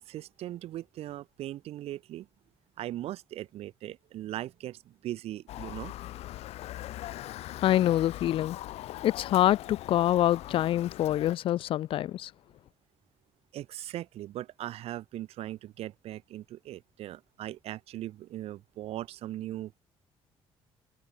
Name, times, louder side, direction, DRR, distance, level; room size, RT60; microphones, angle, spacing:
voice 1, 0.0-2.3 2.8-5.9 13.5-19.8, right 14 dB, 75° right, 1.7 m, -39 dB
Motor vehicle (road) / Siren, 5.5-11.4, left 15 dB, 85° left, 1.3 m, -41 dB
voice 2, 7.6-8.6 9.0-12.3, left 13 dB, 60° left, 0.4 m, -25 dB
cardioid pair, 155°, 10 cm